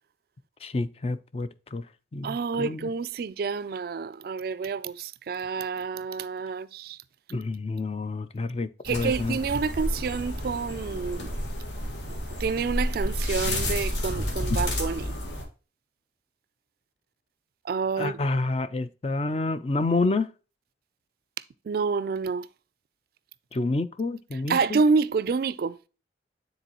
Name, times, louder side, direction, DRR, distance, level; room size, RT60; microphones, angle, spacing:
voice 1, 0.6-1.9 2.1-2.9 7.3-9.4 18.0-20.3 23.5-24.8, left 3 dB, 30° left, 0.4 m, -28 dB
voice 2, 2.2-7.0 8.8-11.3 12.4-15.1 17.7-18.1 21.7-22.5 24.5-25.8, right 5 dB, 55° right, 0.3 m, -28 dB
sound 1, 8.8-15.4, left 1 dB, 80° left, 1.6 m, -30 dB
9.3 x 3.9 x 2.9 m
head